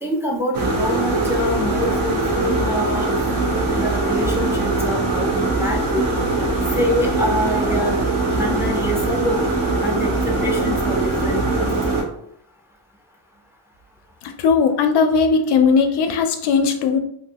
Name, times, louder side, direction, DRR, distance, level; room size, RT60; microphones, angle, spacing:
voice 1, 0.0-3.1 3.5-6.1 6.7-7.9 8.3-9.5 9.8-11.7, left 1 dB, 5° right, 0 dB, 0.5 m, -26 dB
sound 1, 0.5-12.0, right 2 dB, 50° right, 0.8 m, -21 dB
voice 2, 14.2-17.0, left 5 dB, 60° left, 6 dB, 0.5 m, -18 dB
2.6 x 2.3 x 2.8 m, 0.69 s
cardioid pair, 85°, 46 cm